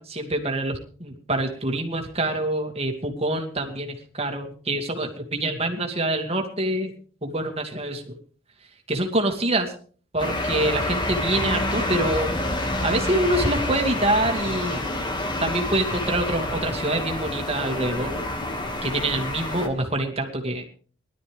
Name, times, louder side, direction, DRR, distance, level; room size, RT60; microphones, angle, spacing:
voice 1, 0.0-6.9 7.2-8.1 8.9-9.7 10.1-14.8 15.4-18.1 18.8-20.6, right 1 dB, 30° right, 4 dB, 2.6 m, -26 dB
sound 1, 10.2-19.7, left 1 dB, 25° left, 2.1 m, -28 dB
20.0 x 12.5 x 3.5 m, 0.42 s
head